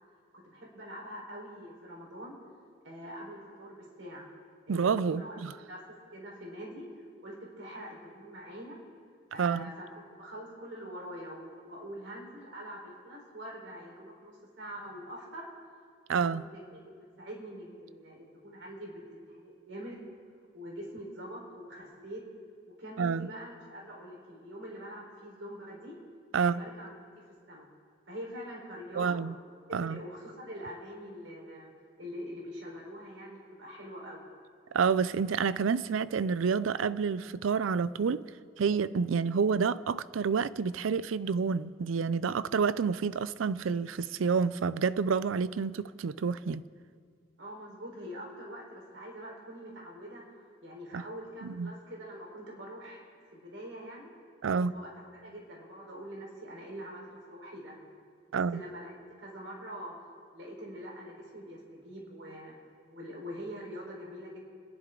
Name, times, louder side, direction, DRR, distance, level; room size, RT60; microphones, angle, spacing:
voice 1, 0.3-2.4 2.8-4.3 4.7-5.4 5.7-5.8 6.1-6.9 7.2-8.8 9.3-9.9 10.2-15.5 16.1-16.9 17.2-19.0 19.3-20.1 20.5-22.2 22.7-26.0 26.3-26.9 27.5-27.7 28.1-29.2 29.7-31.7 32.0-34.3 47.4-53.0 53.3-54.1 54.5-57.8 58.3-58.9 59.2-60.0 60.3-62.5 62.9-64.4, equal, 75° right, 4.2 m, -44 dB
voice 2, 4.7-5.5 9.4-9.7 16.1-16.4 23.0-23.3 26.3-26.6 29.0-29.3 29.7-30.0 34.7-38.3 38.6-46.6 50.9-51.0 51.4-51.7 54.4-54.7 58.3-58.6, right 5 dB, 90° right, 0.4 m, -29 dB
29.0 x 11.0 x 3.8 m
head